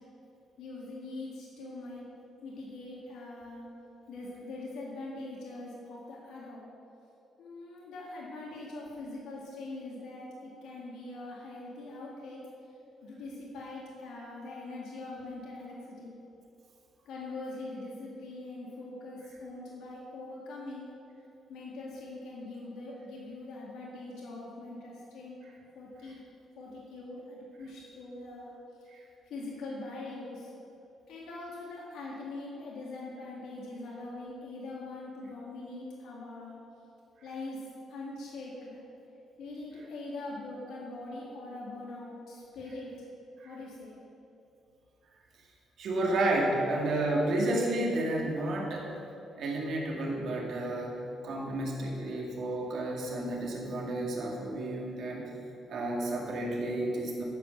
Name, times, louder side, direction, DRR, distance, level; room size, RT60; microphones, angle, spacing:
voice 1, 0.6-2.1 2.4-3.7 4.1-6.7 7.4-12.4 13.0-16.1 17.1-20.9 21.5-25.4 25.7-26.2 26.6-28.5 28.8-30.5 31.1-36.6 37.2-37.6 37.9-38.8 39.4-42.9 43.4-44.0, left 2 dB, 80° left, -4 dB, 1.9 m, -42 dB
voice 2, 45.8-48.9 49.4-55.3 55.7-57.2, right 1 dB, 65° right, -2 dB, 2.1 m, -31 dB
11.5 x 5.2 x 6.7 m, 2.8 s
cardioid pair, 90°, 0 cm